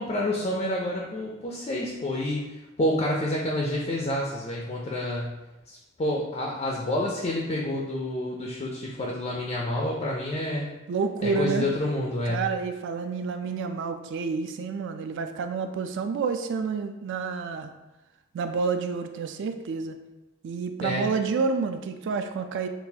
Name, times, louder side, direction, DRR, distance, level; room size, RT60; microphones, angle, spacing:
voice 1, 0.0-5.3 5.7-10.7 11.2-12.4 20.8-21.0, left 1 dB, 30° left, -2 dB, 0.4 m, -28 dB
voice 2, 10.9-11.7 12.3-17.7 18.3-20.0 20.4-22.7, right 5 dB, 60° right, 8 dB, 0.3 m, -29 dB
3.9 x 2.4 x 2.7 m, 1.0 s
head